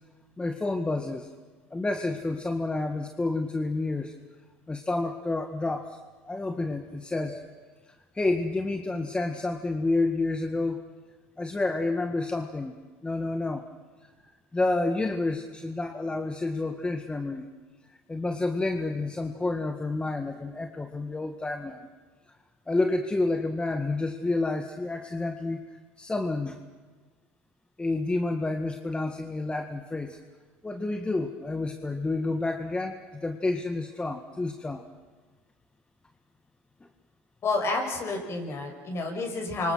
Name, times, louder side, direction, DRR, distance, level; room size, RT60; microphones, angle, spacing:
voice 1, 0.4-1.3 1.7-4.1 4.7-6.0 6.2-10.8 11.4-12.7 13.0-13.6 14.5-17.5 17.9-21.9 22.7-26.6 27.8-30.2 30.6-34.9, left 2 dB, 15° left, 6 dB, 1.6 m, -29 dB
voice 2, 37.4-39.7, left 3 dB, 45° left, 3 dB, 6.5 m, -29 dB
29.0 x 25.0 x 6.3 m, 1.4 s
supercardioid pair, 95°, 6 cm